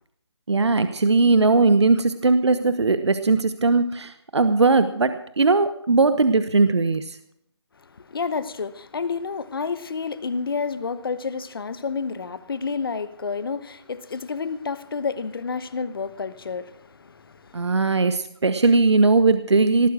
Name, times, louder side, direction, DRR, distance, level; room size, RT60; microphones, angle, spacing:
voice 1, 0.5-7.2 17.5-19.9, right 3 dB, 70° right, 1.1 m, -19 dB
voice 2, 7.8-17.9, left 5 dB, 55° left, 1.1 m, -30 dB
18.5 x 9.5 x 6.2 m
figure-of-eight pair, 155°, 15 cm